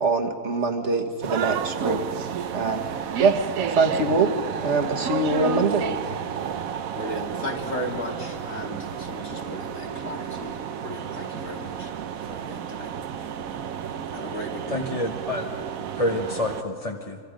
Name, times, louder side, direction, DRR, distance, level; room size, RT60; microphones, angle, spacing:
voice 1, 0.0-2.0 2.5-2.8 3.2-3.3 3.7-4.3 4.6-5.8, right 3 dB, 55° right, 4 dB, 1.7 m, -23 dB
sound 1, 1.2-16.6, right 8 dB, 75° right, 1.2 m, -32 dB
voice 2, 6.9-11.9 12.2-12.9 14.1-14.8, left 1 dB, 65° left, 0 dB, 3.1 m, -36 dB
voice 3, 14.7-15.6 16.0-17.2, left 1 dB, 30° left, 2 dB, 1.0 m, -28 dB
28.5 x 25.0 x 5.2 m, 2.2 s
omnidirectional pair, 1.5 m